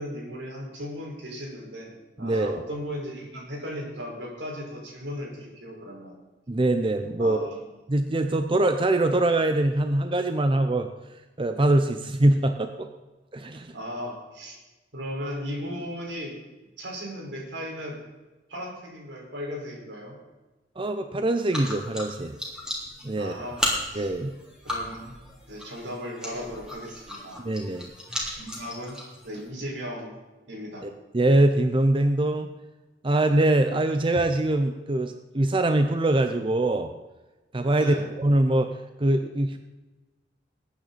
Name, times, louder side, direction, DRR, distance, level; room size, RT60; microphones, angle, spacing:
voice 1, 0.0-6.1 7.2-7.6 13.7-14.6 14.9-16.4 16.8-18.0 18.5-20.2 23.2-24.1 24.6-25.1 25.5-27.4 28.3-29.0 29.2-30.1 30.5-30.9 37.7-38.1, equal, 80° right, -2 dB, 5.0 m, -36 dB
voice 2, 2.2-2.6 6.5-7.5 7.9-12.9 13.3-13.7 20.8-22.4 23.0-23.3 23.9-24.3 27.4-27.9 30.8-32.5 33.0-36.9 37.5-39.6, right 1 dB, 30° right, 7 dB, 0.7 m, -23 dB
sound 1, 21.5-29.5, left 1 dB, 5° right, 3.5 m, -35 dB
21.0 x 9.3 x 4.2 m, 1.1 s
head